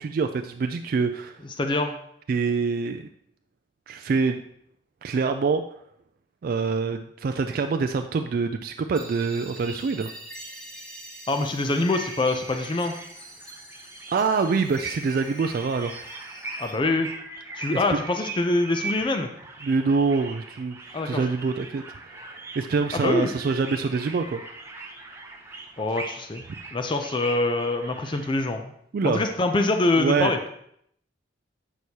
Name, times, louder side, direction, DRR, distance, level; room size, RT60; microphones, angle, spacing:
voice 1, 0.0-1.4 2.3-3.1 3.9-4.4 5.0-5.6 6.4-10.1 14.1-15.9 17.7-18.0 19.6-24.4 28.9-29.2 30.0-30.3, right 4 dB, 50° right, 6 dB, 0.3 m, -25 dB
voice 2, 1.6-1.9 11.3-12.9 16.6-17.1 17.6-19.3 20.9-21.2 22.9-23.3 25.8-26.4 26.7-28.7 29.0-30.4, left 2 dB, 25° left, 5 dB, 0.4 m, -24 dB
sound 1, 8.9-16.8, right 1 dB, 5° left, 1.1 m, -43 dB
sound 2, 11.9-28.3, right 3 dB, 15° right, 0.6 m, -40 dB
7.9 x 6.2 x 2.8 m, 0.70 s
head